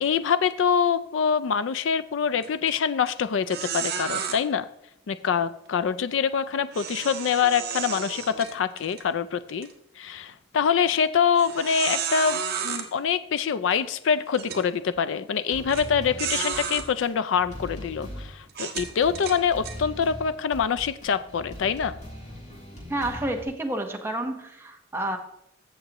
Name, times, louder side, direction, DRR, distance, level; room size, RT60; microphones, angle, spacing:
voice 1, 0.0-4.7 5.1-9.7 10.0-21.9, left 7 dB, 70° left, 14 dB, 0.4 m, -25 dB
sound 1, 2.4-2.7 3.1-3.2 3.5-4.4 6.7-9.0 9.5-9.7 10.3-10.4 11.4-12.9 13.7-13.8 14.3-14.6 15.7-15.8 16.2-16.9 17.5-17.7 18.5-19.8, right 7 dB, 55° right, 1.4 m, -32 dB
sound 2, 15.5-23.5, equal, 40° left, 3.0 m, -41 dB
voice 2, 22.9-25.2, right 1 dB, 10° right, 3 dB, 1.0 m, -30 dB
15.5 x 6.6 x 2.9 m, 0.79 s
head